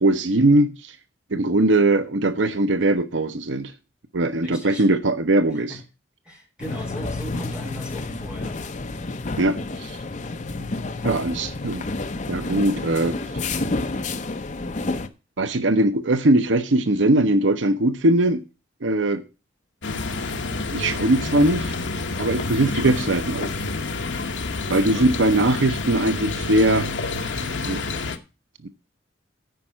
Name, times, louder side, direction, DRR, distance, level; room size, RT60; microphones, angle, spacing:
voice 1, 0.0-0.9 1.3-3.7 4.1-5.7 9.4-10.0 11.0-11.8 12.3-13.1 15.4-18.4 18.8-19.2 20.7-21.7 22.2-23.5 24.7-26.9 27.6-27.8 28.6-28.7, right 2 dB, 75° right, 0.8 m, -20 dB
voice 2, 4.4-4.9 5.5-5.8 6.2-8.6 24.8-25.1, right 1 dB, 5° right, 3.4 m, -39 dB
sound 1, 6.6-15.1, left 2 dB, 40° left, 0.8 m, -30 dB
sound 2, 19.8-28.2, left 3 dB, 70° left, 1.0 m, -28 dB
9.4 x 5.3 x 7.2 m
head